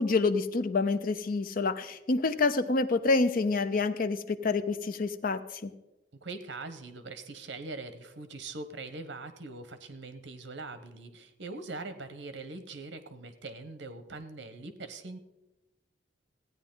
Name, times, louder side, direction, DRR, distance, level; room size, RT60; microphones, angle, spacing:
voice 1, 0.0-5.7, left 3 dB, 50° left, 12 dB, 0.6 m, -27 dB
voice 2, 6.2-15.2, right 3 dB, 70° right, 10 dB, 1.0 m, -42 dB
15.5 x 9.3 x 3.9 m, 1.0 s
head